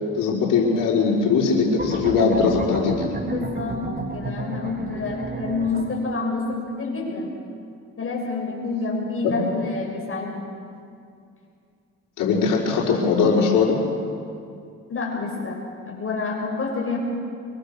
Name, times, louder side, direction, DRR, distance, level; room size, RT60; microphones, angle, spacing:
voice 1, 0.2-3.2 9.2-9.4 12.2-13.8, left 5 dB, 75° left, -5 dB, 4.9 m, -20 dB
sound 1, 1.8-6.0, right 3 dB, 30° right, 2.4 m, -32 dB
voice 2, 3.2-7.3 8.0-10.5 14.9-17.0, left 3 dB, 40° left, -2 dB, 7.3 m, -28 dB
23.5 x 22.5 x 6.7 m, 2.4 s
supercardioid pair, 60°, 32 cm